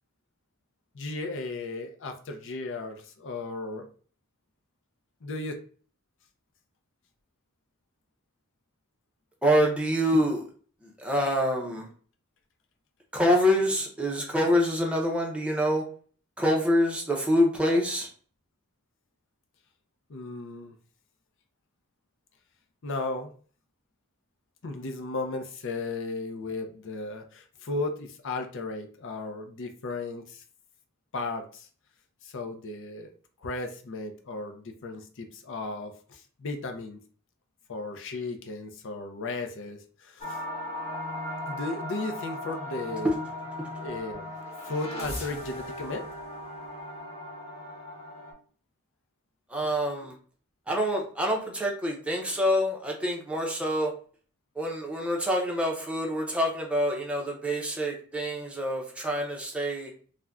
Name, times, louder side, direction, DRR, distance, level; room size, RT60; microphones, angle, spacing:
voice 1, 0.9-3.9 5.2-5.6 20.1-20.7 22.8-23.3 24.6-30.4 31.1-31.7 32.2-33.1 33.4-37.0 37.7-40.4 41.5-43.1 43.8-44.3 44.6-46.1, left 3 dB, 55° left, 5 dB, 0.5 m, -35 dB
voice 2, 9.4-10.4 10.8-11.9 13.1-15.8 16.4-18.1 43.0-43.1 49.5-50.1 50.7-53.9 54.6-59.9, equal, 5° right, -1 dB, 0.6 m, -26 dB
sound 1, 40.2-48.3, left 1 dB, 30° left, 1.1 m, -37 dB
2.5 x 2.1 x 3.4 m, 0.43 s
head